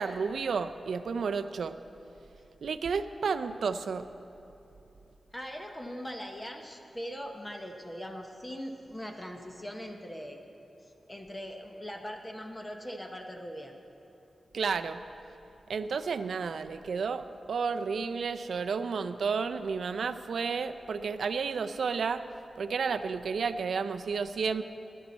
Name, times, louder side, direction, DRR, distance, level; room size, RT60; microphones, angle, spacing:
voice 1, 0.0-1.8 2.6-4.1 14.5-15.0 15.7-22.3 22.6-24.6, right 5 dB, 80° right, 10 dB, 0.4 m, -31 dB
voice 2, 5.3-10.4 10.8-13.7, equal, 15° left, 3 dB, 0.8 m, -41 dB
16.5 x 11.0 x 4.2 m, 2.9 s
wide cardioid pair, 145°, 0 cm